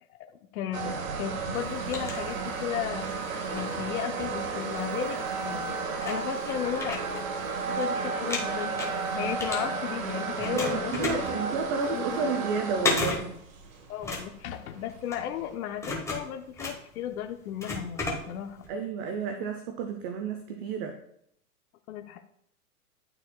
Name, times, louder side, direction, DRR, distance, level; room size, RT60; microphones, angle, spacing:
voice 1, 0.5-3.1 3.5-7.0 7.6-11.5 11.9-12.3 13.9-18.6 21.9-22.2, left 10 dB, 65° left, 5 dB, 0.7 m, -35 dB
sound 1, 0.7-15.5, right 5 dB, 60° right, 1.3 m, -33 dB
sound 2, 1.5-2.9 3.3-5.0 5.6-5.7 6.0-7.9 8.1-10.1 10.4-18.7, left 2 dB, 5° left, 1.2 m, -35 dB
voice 2, 10.5-13.3 18.7-21.0, right 5 dB, 35° right, 6 dB, 0.7 m, -31 dB
12.0 x 4.4 x 2.3 m, 0.71 s
hypercardioid pair, 120°, 47 cm